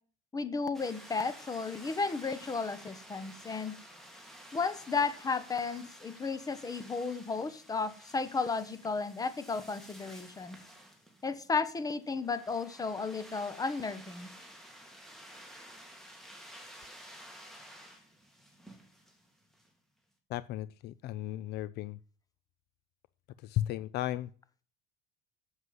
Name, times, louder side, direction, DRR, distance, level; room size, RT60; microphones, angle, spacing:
voice 1, 0.3-3.8 4.5-10.6 11.2-14.3, left 4 dB, 20° left, 13 dB, 1.2 m, -34 dB
sound 1, 0.7-19.7, equal, ahead, 2.5 m, -52 dB
voice 2, 20.3-22.0 23.4-24.3, left 13 dB, 60° left, 18 dB, 0.4 m, -35 dB
7.8 x 7.7 x 7.9 m, 0.42 s
cardioid pair, 125°, 20 cm